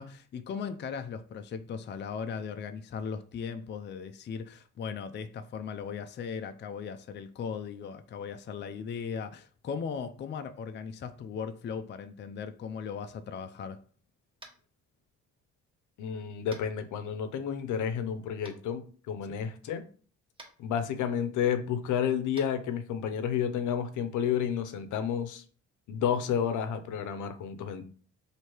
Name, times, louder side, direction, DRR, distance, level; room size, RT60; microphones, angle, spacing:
voice 1, 0.0-13.8, left 6 dB, 40° left, 0.4 m, -38 dB
Tap, 14.4-14.7 16.5-16.7 18.4-18.5 20.3-20.5 22.3-22.5, right 2 dB, 15° right, 1.2 m, -48 dB
voice 2, 16.0-19.8 20.6-25.4 25.9-27.8, left 8 dB, 80° left, 0.7 m, -31 dB
3.1 x 2.8 x 4.4 m
cardioid pair, 90°, 30 cm